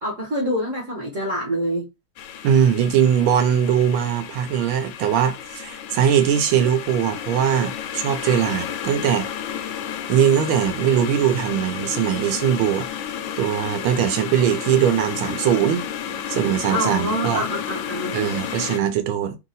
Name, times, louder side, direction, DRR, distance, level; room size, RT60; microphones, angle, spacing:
voice 1, 0.0-1.9 16.7-18.2, equal, 45° right, 1.2 m, -26 dB
sound 1, 2.2-18.8, left 9 dB, 75° left, 1.0 m, -32 dB
voice 2, 2.4-9.3 10.1-12.8 13.4-15.9 16.3-17.4 18.1-19.4, right 9 dB, 80° right, 1.5 m, -20 dB
3.4 x 2.8 x 4.0 m
omnidirectional pair, 2.3 m